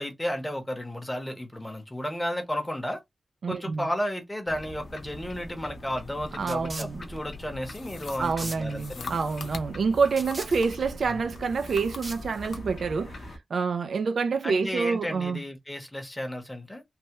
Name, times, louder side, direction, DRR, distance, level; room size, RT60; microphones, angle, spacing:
voice 1, 0.0-3.0 3.5-9.2 11.1-11.2 14.4-16.8, equal, 10° left, 0.8 m, -33 dB
voice 2, 3.4-3.8 6.4-7.0 8.2-15.4, right 5 dB, 65° right, 0.3 m, -27 dB
sound 1, 4.5-13.4, left 1 dB, 50° left, 0.6 m, -43 dB
sound 2, 5.1-12.8, right 2 dB, 25° right, 0.6 m, -44 dB
sound 3, 7.6-10.9 11.3-12.7, left 4 dB, 90° left, 0.6 m, -44 dB
3.3 x 2.1 x 2.9 m
wide cardioid pair, 165°, 0 cm